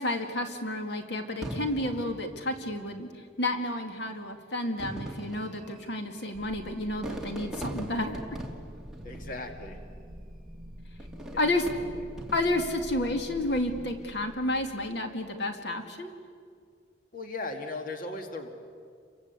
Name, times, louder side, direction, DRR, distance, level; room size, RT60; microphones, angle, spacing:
voice 1, 0.0-3.1 3.4-8.2 11.4-11.7 12.3-16.1, left 1 dB, 65° left, 4 dB, 2.2 m, -31 dB
Fireworks, 1.4-3.0 3.9-4.0 4.6-9.9 11.0-12.8 13.3-13.8, right 1 dB, 5° right, 2.4 m, -41 dB
sound 1, 6.3-15.6, equal, 40° right, 4.7 m, -46 dB
voice 2, 9.0-9.8 11.3-11.5 11.8-11.9 17.1-18.5, left 2 dB, 45° left, 4 dB, 2.1 m, -37 dB
29.0 x 24.0 x 8.3 m, 2.2 s
head